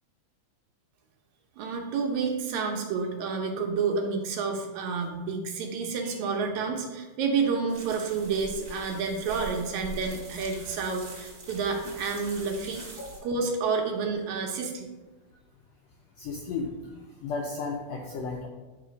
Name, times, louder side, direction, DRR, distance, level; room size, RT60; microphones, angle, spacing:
voice 1, 1.6-12.8 13.2-14.9, right 5 dB, 75° right, 2 dB, 2.0 m, -29 dB
sound 1, 7.7-13.2, right 4 dB, 35° right, 2.5 m, -43 dB
voice 2, 16.2-18.5, left 4 dB, 80° left, 0 dB, 1.4 m, -34 dB
9.6 x 3.2 x 5.0 m, 1.2 s
omnidirectional pair, 3.6 m